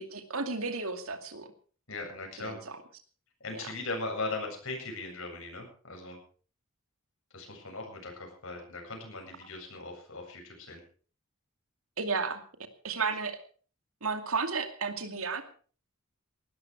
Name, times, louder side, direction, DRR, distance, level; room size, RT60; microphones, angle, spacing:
voice 1, 0.0-1.5 2.4-2.8 3.5-3.6 12.0-12.4 12.8-13.4 14.0-15.4, right 4 dB, 80° right, 7 dB, 2.4 m, -33 dB
voice 2, 1.9-2.6 3.4-6.2 7.3-10.8, left 3 dB, 70° left, 2 dB, 7.7 m, -39 dB
19.0 x 13.5 x 4.8 m, 0.42 s
head